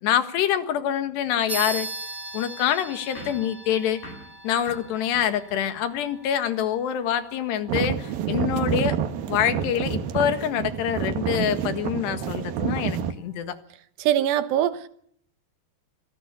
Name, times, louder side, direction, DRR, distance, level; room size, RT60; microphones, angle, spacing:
voice 1, 0.0-1.9 2.3-4.0 4.4-9.0 9.3-13.6, left 10 dB, 80° left, 3.7 m, -25 dB
sound 1, 1.5-11.4, right 2 dB, 35° right, 0.5 m, -40 dB
sound 2, 3.2-6.0, left 1 dB, 55° left, 9.6 m, -45 dB
sound 3, 7.7-13.1, right 8 dB, 65° right, 2.9 m, -28 dB
voice 2, 14.0-14.9, right 11 dB, 80° right, 3.3 m, -22 dB
25.5 x 16.5 x 8.4 m
omnidirectional pair, 4.9 m